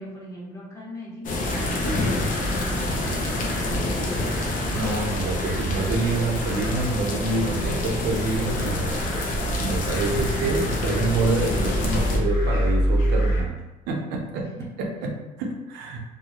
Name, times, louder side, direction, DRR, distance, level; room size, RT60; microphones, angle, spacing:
voice 1, 0.0-4.2 14.4-15.1, equal, 15° left, -7 dB, 0.9 m, -40 dB
sound 1, 1.2-12.2, left 1 dB, 50° left, 0.5 m, -27 dB
sound 2, 1.5-13.4, equal, 80° left, 0.9 m, -30 dB
voice 2, 4.7-9.1 9.6-13.6 13.9-14.5 14.8-16.0, right 3 dB, 90° right, 0 dB, 0.5 m, -27 dB
2.2 x 2.0 x 2.9 m, 1.1 s
cardioid pair, 110°, 17 cm